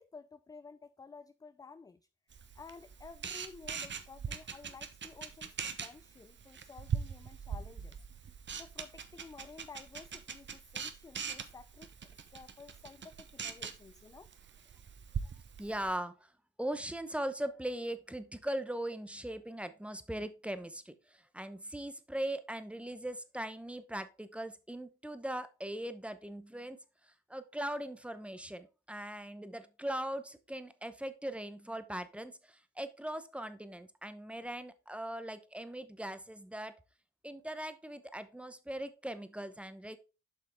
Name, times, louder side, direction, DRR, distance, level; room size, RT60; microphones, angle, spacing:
voice 1, 0.0-2.0 2.6-11.9 12.3-14.3, left 4 dB, 15° left, 0.3 m, -53 dB
Camera, 2.3-16.0, right 7 dB, 40° right, 0.9 m, -42 dB
voice 2, 15.6-16.3 16.6-26.8 27.0-36.7 37.2-40.0, right 1 dB, 5° right, 0.8 m, -40 dB
7.8 x 5.5 x 3.4 m
cardioid pair, 90°, 30 cm